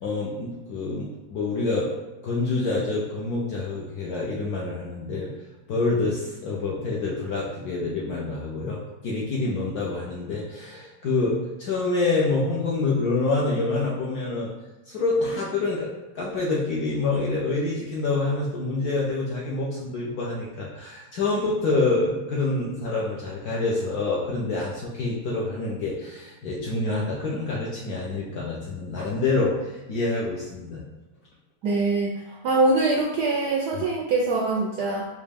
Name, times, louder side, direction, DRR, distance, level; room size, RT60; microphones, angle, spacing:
voice 1, 0.0-1.9 2.2-5.3 5.7-14.5 14.9-15.9 16.1-30.8 33.7-33.8, left 3 dB, 70° left, -4 dB, 0.9 m, -27 dB
voice 2, 31.6-35.1, right 3 dB, 75° right, -2 dB, 0.9 m, -23 dB
5.1 x 2.2 x 3.4 m, 1.1 s
omnidirectional pair, 2.2 m